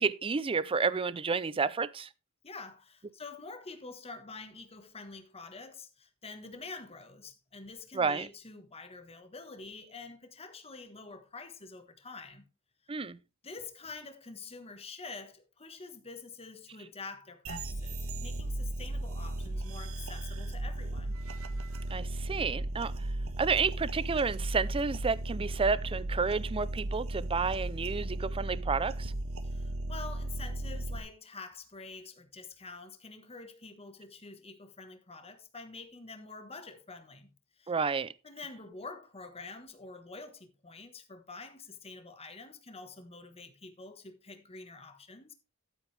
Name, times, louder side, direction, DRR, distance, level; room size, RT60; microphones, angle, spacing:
voice 1, 0.0-2.1 7.9-8.3 12.9-13.2 21.9-23.1 23.4-29.1 37.7-38.1, right 5 dB, 25° right, 0.5 m, -30 dB
voice 2, 2.4-12.4 13.4-21.2 29.4-37.3 37.6-37.7 38.2-45.3, left 3 dB, 25° left, 1.3 m, -47 dB
sound 1, 17.5-31.0, right 1 dB, 65° right, 1.4 m, -36 dB
12.5 x 8.2 x 3.3 m
head